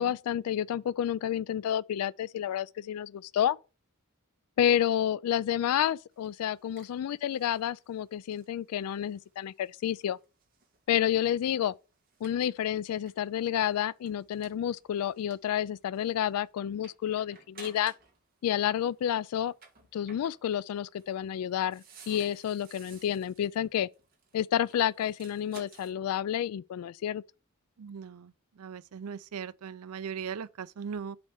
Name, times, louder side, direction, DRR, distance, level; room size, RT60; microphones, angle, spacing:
voice 1, 0.0-3.6 4.6-10.2 10.9-11.7 12.2-17.9 18.4-19.5 19.9-23.9 24.3-27.2, left 10 dB, 85° left, 0.3 m, -30 dB
sound 1, 6.1-18.3 18.5-25.9, right 4 dB, 45° right, 2.3 m, -57 dB
voice 2, 27.8-31.2, right 6 dB, 90° right, 0.5 m, -39 dB
7.7 x 4.3 x 5.2 m
head